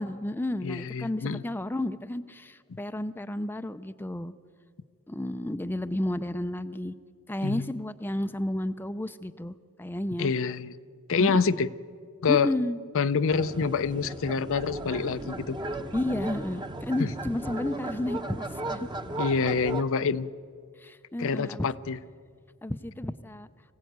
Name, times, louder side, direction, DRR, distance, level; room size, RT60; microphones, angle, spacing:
voice 1, 0.0-4.3 5.1-6.9 7.3-10.3 11.2-11.6 12.3-12.8 15.9-18.9 20.8-21.7 22.6-23.5, left 1 dB, 10° left, 10 dB, 0.5 m, -32 dB
voice 2, 0.6-1.4 7.4-7.7 10.2-10.7 11.1-11.7 12.2-12.5 12.9-15.6 17.0-17.1 19.2-20.3 21.2-22.0, left 5 dB, 65° left, 13 dB, 0.6 m, -26 dB
sound 1, 13.3-19.8, right 2 dB, 20° right, 1.0 m, -36 dB
24.0 x 16.0 x 9.3 m, 2.1 s
head